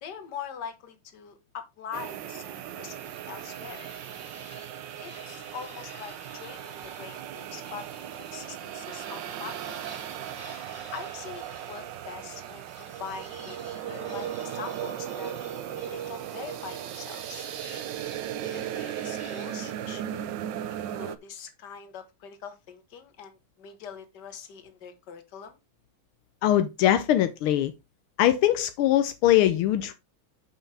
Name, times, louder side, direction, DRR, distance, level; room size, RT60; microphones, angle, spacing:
voice 1, 0.0-3.9 5.0-9.8 10.9-13.6 13.9-15.3 15.9-17.5 18.4-20.3 20.7-25.6, left 7 dB, 55° left, 1.8 m, -43 dB
sound 1, 1.9-21.2, right 10 dB, 70° right, 1.2 m, -37 dB
sound 2, 2.8-8.6 8.9-19.7, left 1 dB, 5° left, 2.1 m, -50 dB
voice 2, 26.4-27.7 28.2-29.9, left 12 dB, 80° left, 1.5 m, -22 dB
8.6 x 5.7 x 3.3 m
omnidirectional pair, 2.3 m